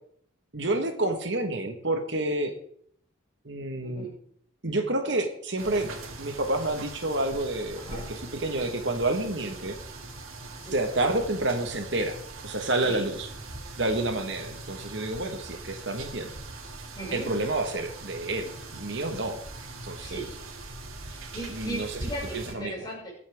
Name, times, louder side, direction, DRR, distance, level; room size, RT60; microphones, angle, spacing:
voice 1, 0.5-2.5 3.4-4.1 4.6-5.9 6.2-9.8 10.7-12.2 12.4-13.3 13.8-16.3 17.1-19.4 19.8-20.3 21.5-21.9 22.3-22.7, right 2 dB, 60° right, 5 dB, 1.5 m, -29 dB
sound 1, 5.6-22.5, right 2 dB, 90° right, 2.8 m, -41 dB
voice 2, 16.9-17.3 20.0-20.3 21.1-23.1, right 1 dB, 20° left, -4 dB, 6.3 m, -37 dB
22.5 x 8.4 x 3.6 m, 0.63 s
head